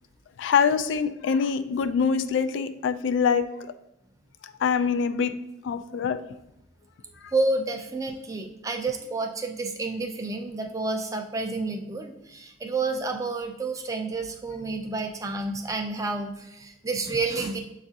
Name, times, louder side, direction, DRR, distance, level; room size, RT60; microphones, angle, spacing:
voice 1, 0.4-3.5 4.6-5.4 5.6-6.2, left 6 dB, 80° left, 10 dB, 0.3 m, -24 dB
voice 2, 7.3-17.6, right 3 dB, 20° right, 4 dB, 0.4 m, -30 dB
7.0 x 2.4 x 2.7 m, 0.85 s
head